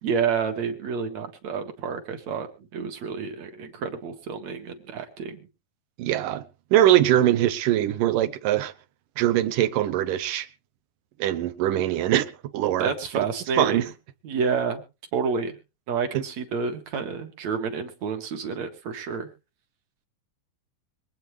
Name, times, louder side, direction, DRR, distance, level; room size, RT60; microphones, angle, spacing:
voice 1, 0.0-5.5 12.8-13.8 14.2-14.8 15.1-15.6 15.9-19.3, right 6 dB, 55° right, 2.8 m, -29 dB
voice 2, 6.0-6.5 6.7-8.7 9.2-10.5 11.2-12.9 13.6-13.9 16.1-16.2, right 12 dB, 75° right, 2.5 m, -22 dB
23.5 x 8.9 x 3.2 m
omnidirectional pair, 4.1 m